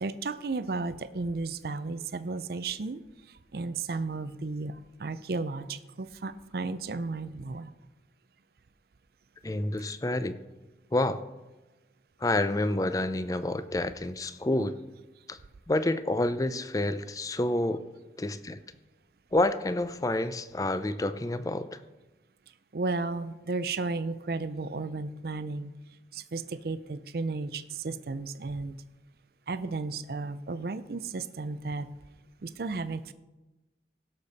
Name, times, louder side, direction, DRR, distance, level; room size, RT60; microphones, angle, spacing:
voice 1, 0.0-3.0 3.5-4.7 5.0-7.7 22.7-25.7 26.3-28.7 29.5-31.9 32.4-33.1, right 3 dB, 60° right, 13 dB, 0.5 m, -33 dB
voice 2, 9.4-10.4 10.9-11.2 12.2-14.8 15.3-15.4 15.7-17.8 18.2-18.6 19.3-21.7, left 1 dB, 20° left, 12 dB, 0.4 m, -28 dB
16.5 x 6.7 x 4.1 m, 1.1 s
head